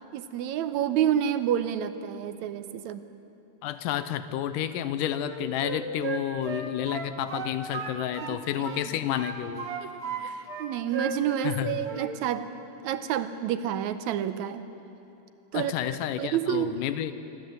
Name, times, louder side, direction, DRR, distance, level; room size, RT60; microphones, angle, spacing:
voice 1, 0.1-3.1 8.2-8.8 9.8-9.9 10.2-12.5 12.8-14.6 15.5-15.7 16.2-16.8, right 10 dB, 75° right, 11 dB, 1.9 m, -29 dB
voice 2, 3.6-9.7 11.4-11.7 15.5-17.1, left 11 dB, 85° left, 12 dB, 2.3 m, -30 dB
Wind instrument woodwind instrument, 5.2-8.4 8.6-10.2 10.5-11.6 11.8-12.1, right 5 dB, 50° right, 2.2 m, -35 dB
26.5 x 13.0 x 7.8 m, 3.0 s
omnidirectional pair, 3.7 m